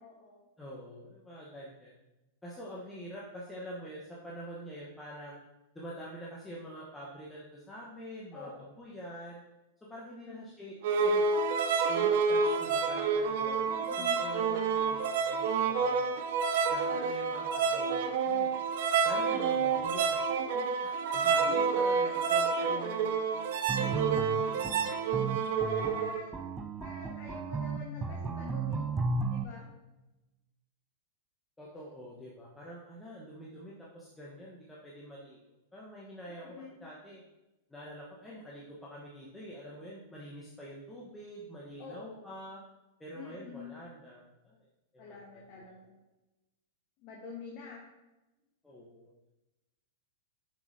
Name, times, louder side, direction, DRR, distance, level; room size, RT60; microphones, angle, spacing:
voice 1, 0.0-0.4 8.3-8.6 10.2-10.4 13.7-14.2 15.8-16.2 21.0-21.7 21.9-22.9 24.1-24.4 25.6-26.5 26.8-28.9 29.3-29.7 36.3-36.7 41.8-42.3 43.1-43.7 45.0-46.0 47.0-47.8, left 4 dB, 45° left, -3 dB, 1.3 m, -47 dB
voice 2, 0.6-1.9 2.4-5.4 5.7-9.4 9.8-11.2 11.9-13.6 14.0-16.0 16.7-18.5 19.0-20.2 20.5-24.2 24.5-25.1 31.6-35.4 35.7-37.2 37.7-42.6 43.0-44.6 44.9-45.6 48.6-49.1, equal, 10° left, -5 dB, 1.1 m, -46 dB
sound 1, 10.8-26.2, right 5 dB, 60° right, 0.6 m, -29 dB
sound 2, 23.7-29.4, right 4 dB, 15° right, 0.4 m, -34 dB
6.1 x 6.0 x 2.7 m, 1.0 s
hypercardioid pair, 110°, 0 cm